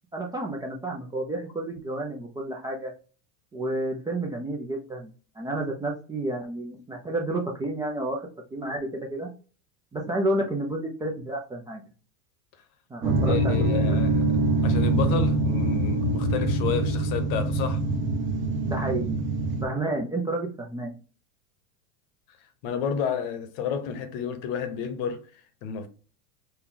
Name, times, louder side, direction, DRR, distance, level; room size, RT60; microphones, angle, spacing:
voice 1, 0.1-2.9 3.5-5.1 5.4-9.3 9.9-11.8 12.9-14.0 18.6-19.2 19.6-20.9, right 1 dB, 10° right, 0.4 m, -30 dB
sound 1, 13.0-19.6, right 2 dB, 25° right, 1.1 m, -24 dB
voice 2, 13.3-14.2 14.6-17.8 22.6-25.2 25.6-25.9, left 7 dB, 55° left, 0.9 m, -30 dB
4.3 x 2.2 x 3.7 m
supercardioid pair, 120°, 42 cm